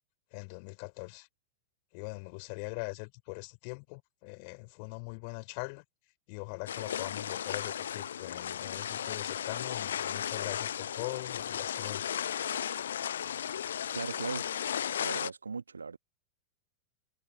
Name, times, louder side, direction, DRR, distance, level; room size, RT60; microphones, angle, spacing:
voice 1, 0.3-1.3 1.9-5.8 6.3-12.1, left 38 dB, 45° left, 4.8 m, -42 dB
sound 1, 6.7-15.3, left 9 dB, 65° left, 0.8 m, -35 dB
voice 2, 13.9-14.5 14.9-16.0, right 5 dB, 75° right, 1.6 m, -38 dB
figure-of-eight pair, 90°, 0 cm